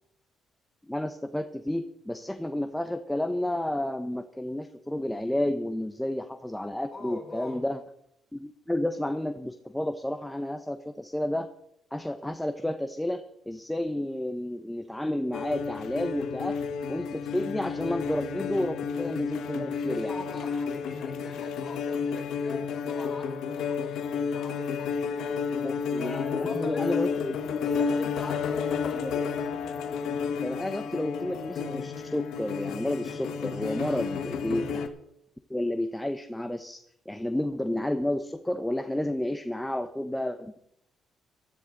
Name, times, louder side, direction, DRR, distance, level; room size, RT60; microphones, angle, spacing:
voice 1, 0.8-7.8 8.3-11.5 11.9-16.6 16.9-20.1 25.6-27.6 28.9-29.1 30.4-34.9 35.5-36.8 37.1-40.6, left 1 dB, 5° left, 8 dB, 0.9 m, -31 dB
voice 2, 6.9-7.7 19.7-25.4 26.0-27.3 27.6-29.1 33.7-34.1, left 2 dB, 25° left, -1 dB, 7.0 m, -42 dB
sound 1, 15.3-34.9, left 6 dB, 80° left, 1.5 m, -31 dB
17.5 x 13.0 x 3.9 m, 0.77 s
cardioid pair, 90°, 0 cm